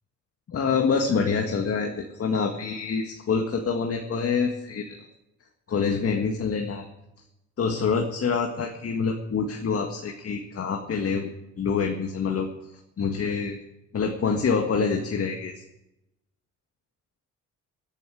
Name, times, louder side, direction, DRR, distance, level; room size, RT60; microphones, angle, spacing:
voice 1, 0.5-5.1 5.7-6.9 7.6-11.3 11.6-12.5 13.0-13.6 13.9-15.6, left 5 dB, 50° left, 3 dB, 1.8 m, -26 dB
18.0 x 11.0 x 4.9 m, 0.89 s
cardioid pair, 90°, 30 cm